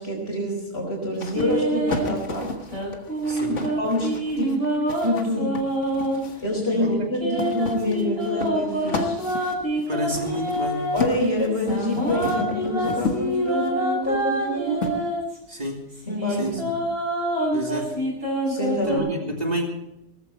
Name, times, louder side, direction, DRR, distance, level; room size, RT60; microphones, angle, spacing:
voice 1, 0.0-2.5 3.5-4.1 4.4-4.6 5.0-5.5 6.4-9.1 10.9-15.0 16.1-16.6 18.4-19.1, left 1 dB, 55° left, -6 dB, 4.5 m, -26 dB
sound 1, 1.2-6.5 7.4-13.7 14.8-14.9, left 3 dB, 70° left, 1.9 m, -33 dB
sound 2, 1.3-2.1 2.7-6.2 6.7-11.0 11.5-15.4 15.9-19.0, right 1 dB, 50° right, 6.7 m, -26 dB
voice 2, 3.3-3.7 6.8-7.1 9.9-10.9 15.5-15.8 16.3-16.7 17.5-18.0 18.8-19.7, equal, 30° right, 1 dB, 2.9 m, -29 dB
18.5 x 14.5 x 4.4 m, 0.88 s
omnidirectional pair, 1.3 m